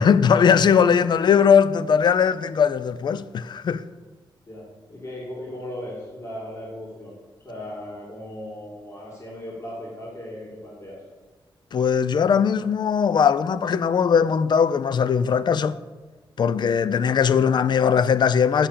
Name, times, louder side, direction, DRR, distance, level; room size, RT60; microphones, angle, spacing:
voice 1, 0.0-3.8 11.7-15.8 16.4-18.7, left 7 dB, 55° left, 0.4 m, -19 dB
voice 2, 4.5-7.2 7.4-11.0, left 1 dB, 35° left, 2.3 m, -37 dB
7.1 x 5.6 x 6.6 m
cardioid pair, 75°, 9 cm